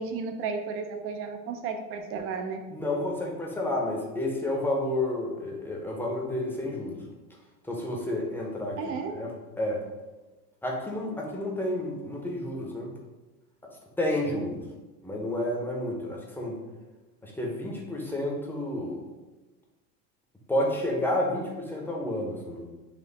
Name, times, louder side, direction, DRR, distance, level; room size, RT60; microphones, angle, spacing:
voice 1, 0.0-2.6 8.8-9.2 11.1-11.4, right 5 dB, 30° right, 5 dB, 0.5 m, -33 dB
voice 2, 2.7-7.0 7.7-9.3 9.6-9.8 10.6-12.9 14.0-14.6 15.0-16.6 17.2-19.0 20.5-22.7, left 1 dB, 5° left, -1 dB, 0.7 m, -30 dB
4.3 x 2.5 x 3.9 m, 1.2 s
hypercardioid pair, 105°, 47 cm